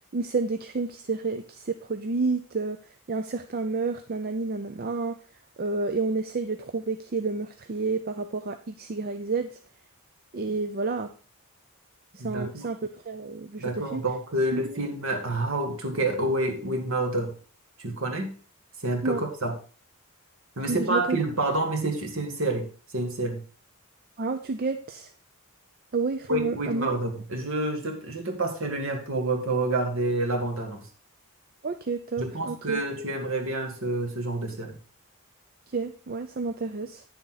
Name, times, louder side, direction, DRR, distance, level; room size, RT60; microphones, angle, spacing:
voice 1, 0.1-5.2 5.6-9.6 10.3-11.1 12.2-14.0 14.5-14.8 19.0-19.2 20.7-21.2 24.2-25.1 25.9-27.0 31.6-32.8 35.7-37.0, right 3 dB, 40° right, 8 dB, 0.5 m, -30 dB
voice 2, 12.2-12.7 13.6-17.3 17.8-18.3 18.8-19.5 20.6-23.4 26.3-30.8 32.2-34.7, right 2 dB, 60° right, 4 dB, 1.8 m, -28 dB
9.3 x 6.9 x 3.9 m, 0.38 s
head